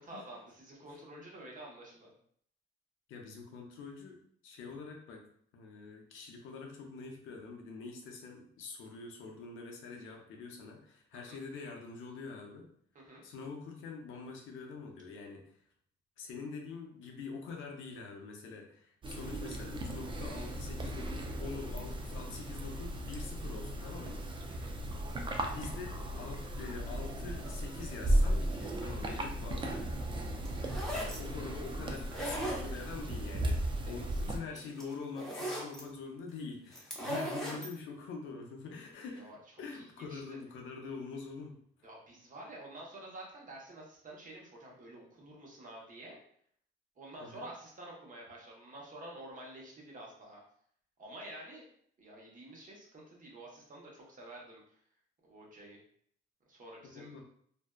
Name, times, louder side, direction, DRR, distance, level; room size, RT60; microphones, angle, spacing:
voice 1, 0.0-2.1 11.3-11.4 12.9-13.2 24.5-24.7 33.8-34.8 39.1-39.4 39.7-40.4 41.8-46.2 47.0-50.4 51.0-51.6 52.0-54.8 55.2-55.8 56.5-57.2, right 1 dB, 40° right, -2 dB, 0.9 m, -49 dB
voice 2, 3.1-5.3 5.5-12.7 13.2-15.5 16.2-24.3 25.5-29.9 30.9-41.6 47.2-47.5 56.9-57.2, left 4 dB, 85° left, 2 dB, 0.5 m, -45 dB
sound 1, 19.0-34.4, right 1 dB, 25° right, 0.3 m, -36 dB
sound 2, 30.5-31.2 32.0-33.0 34.2-34.3 34.5-35.8 36.7-37.7, equal, ahead, 0.7 m, -37 dB
2.6 x 2.1 x 2.2 m, 0.63 s
cardioid pair, 90°, 20 cm